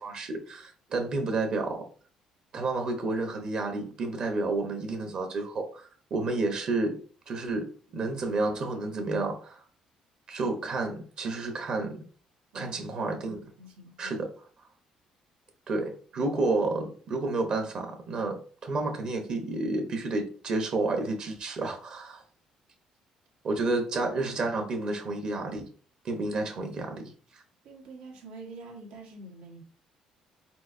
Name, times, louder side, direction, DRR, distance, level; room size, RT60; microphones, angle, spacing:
voice 1, 0.0-1.9 2.5-9.6 10.3-12.0 12.5-13.5 14.0-14.3 15.7-22.2 23.4-25.7 26.0-27.4, right 3 dB, 45° right, 0.9 m, -30 dB
voice 2, 12.5-13.2 13.6-14.2 16.1-16.3 27.6-29.6, right 2 dB, 85° right, 1.4 m, -46 dB
4.5 x 4.0 x 2.7 m
cardioid pair, 150°, 2 cm